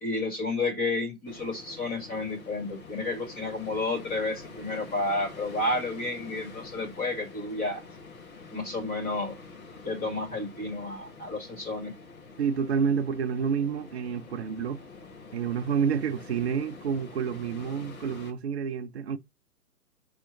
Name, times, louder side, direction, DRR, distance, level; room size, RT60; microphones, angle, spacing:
voice 1, 0.0-7.8 8.5-9.4 9.8-11.9, left 2 dB, 15° left, 2.1 m, -31 dB
sound 1, 1.3-18.3, left 4 dB, 60° left, 2.2 m, -47 dB
voice 2, 12.4-14.8 15.3-19.2, right 6 dB, 40° right, 0.6 m, -29 dB
6.1 x 4.2 x 4.1 m
figure-of-eight pair, 130°, 48 cm